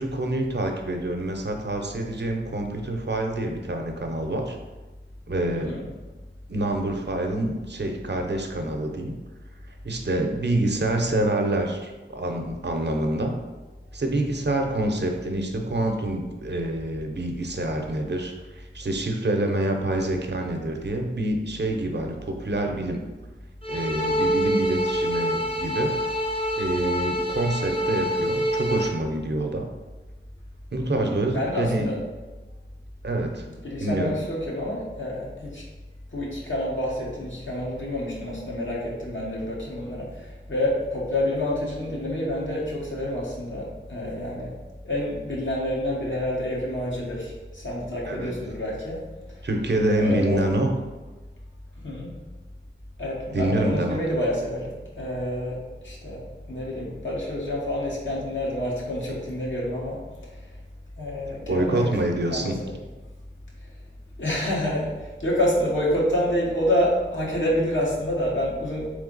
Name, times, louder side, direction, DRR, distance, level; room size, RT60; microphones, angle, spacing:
voice 1, 0.0-4.6 5.3-5.7 6.5-9.1 9.8-13.4 13.9-23.0 23.7-26.0 26.5-29.7 30.7-31.9 33.0-33.5 33.8-34.1 48.1-48.3 49.4-50.7 53.3-54.0 61.5-62.6, right 1 dB, 60° right, 3 dB, 0.6 m, -26 dB
voice 2, 5.5-5.8 30.9-32.0 33.6-35.6 36.1-44.6 44.8-49.0 49.4-49.5 50.0-50.4 51.8-52.1 53.0-56.2 56.5-60.0 60.3-60.5 61.0-61.9 62.3-62.8 64.2-68.9, left 1 dB, 75° left, -5 dB, 1.2 m, -28 dB
sound 1, 23.6-28.9, equal, 25° left, 0.6 m, -26 dB
3.6 x 3.3 x 3.9 m, 1.2 s
wide cardioid pair, 45°, 20 cm